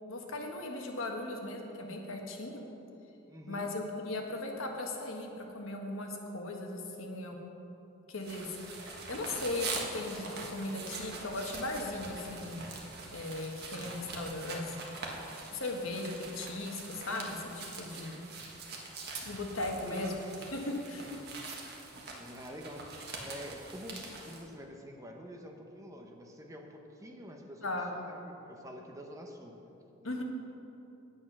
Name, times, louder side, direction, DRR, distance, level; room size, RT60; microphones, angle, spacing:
voice 1, 0.1-2.6 3.5-7.4 8.1-8.5 9.1-12.6 13.1-14.7 15.5-18.2 19.2-20.1 20.5-21.0 27.6-27.9 30.0-30.2, left 2 dB, 75° left, 2 dB, 1.3 m, -37 dB
voice 2, 3.3-3.7 13.7-14.2 19.8-20.5 21.0-21.3 22.1-29.6 30.0-30.2, equal, 15° right, 2 dB, 0.9 m, -47 dB
sound 1, 8.2-24.4, right 3 dB, 55° right, 1.5 m, -43 dB
9.6 x 8.7 x 6.0 m, 2.9 s
head